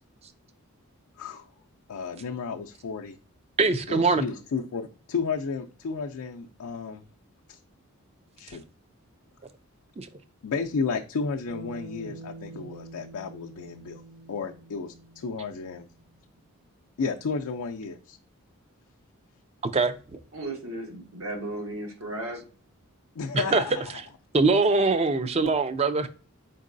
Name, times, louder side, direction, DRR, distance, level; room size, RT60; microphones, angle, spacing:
voice 1, 1.2-1.5 1.9-3.2 3.9-7.0 7.5-7.6 8.4-8.6 10.4-14.0 14.3-15.9 17.0-18.2 23.2-24.0, left 5 dB, 85° left, 0.4 m, -32 dB
voice 2, 3.6-4.2 10.0-10.1 19.6-20.2 23.3-23.6 24.3-26.1, right 3 dB, 25° right, 0.4 m, -23 dB
Bass guitar, 11.5-15.9, right 2 dB, 50° right, 1.5 m, -46 dB
voice 3, 20.3-22.4, right 1 dB, 75° right, 1.3 m, -35 dB
4.5 x 4.0 x 2.5 m
head